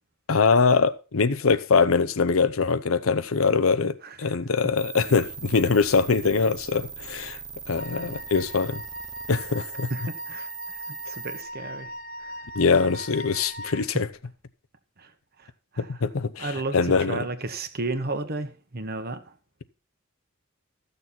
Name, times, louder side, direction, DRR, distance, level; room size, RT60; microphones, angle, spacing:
voice 1, 0.3-7.4 7.7-8.8 9.3-9.9 12.5-14.1 15.8-17.3, left 4 dB, 80° left, 0.7 m, -23 dB
voice 2, 4.0-4.4 7.9-8.2 9.9-10.5 10.9-11.9 12.2-12.3 12.8-12.9 15.0-15.1 15.4-15.5 15.7-16.0 16.4-19.3, right 2 dB, 50° right, 1.3 m, -33 dB
sound 1, 4.8-11.4, right 6 dB, 20° right, 0.7 m, -39 dB
Wind instrument woodwind instrument, 7.8-13.9, equal, 40° left, 0.8 m, -40 dB
14.0 x 6.8 x 4.2 m
head